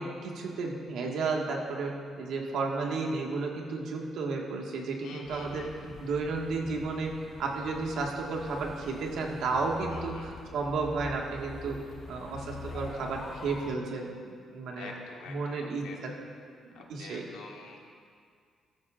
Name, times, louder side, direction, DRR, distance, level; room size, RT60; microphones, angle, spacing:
voice 1, 0.0-7.1 7.4-11.8 12.1-14.9 15.3-16.1 16.6-17.2, right 3 dB, 80° right, 0 dB, 1.7 m, -33 dB
voice 2, 5.0-5.9 9.9-10.3 14.7-16.0 16.7-17.8, left 4 dB, 90° left, -1 dB, 1.7 m, -47 dB
sound 1, 5.3-13.8, left 4 dB, 50° left, 0.8 m, -45 dB
15.0 x 13.0 x 2.5 m, 2.2 s
cardioid pair, 90°, 0 cm